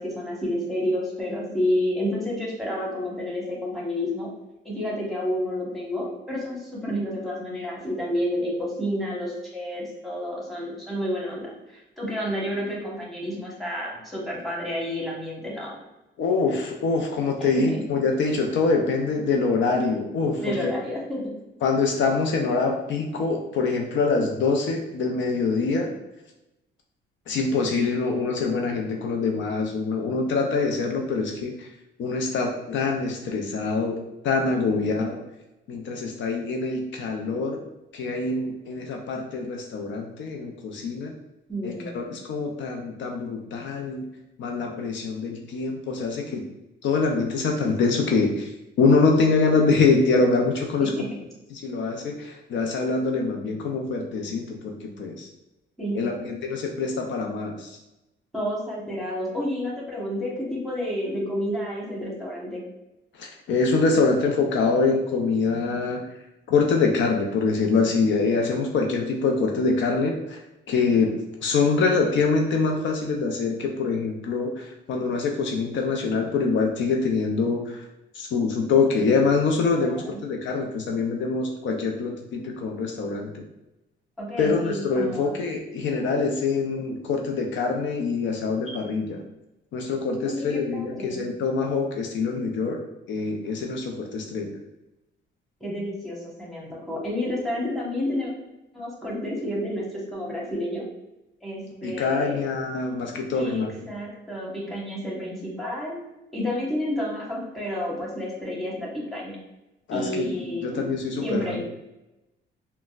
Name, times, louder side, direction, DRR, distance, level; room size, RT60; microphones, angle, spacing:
voice 1, 0.0-4.3 4.6-11.5 12.0-15.8 17.4-17.8 20.4-21.4 41.5-42.1 50.8-51.2 55.8-56.4 58.3-62.6 79.7-80.2 84.2-85.4 90.2-91.2 95.6-98.3 98.7-100.8 101.4-102.5 103.3-106.0 106.3-109.4 109.9-110.9 111.2-111.6, left 1 dB, ahead, -4 dB, 1.1 m, -30 dB
voice 2, 16.2-20.7 21.6-25.9 27.3-31.7 32.0-34.0 34.2-35.2 35.7-37.6 37.9-41.1 41.6-44.1 44.4-46.4 46.8-48.5 48.8-50.9 51.5-55.3 55.9-57.8 63.1-66.1 66.5-70.4 70.7-71.1 71.4-77.8 78.1-83.4 84.4-89.2 89.7-92.8 93.1-94.5 101.8-103.7 109.9-111.6, left 4 dB, 70° left, 2 dB, 0.5 m, -24 dB
3.9 x 2.1 x 2.4 m, 0.96 s
cardioid pair, 90°, 20 cm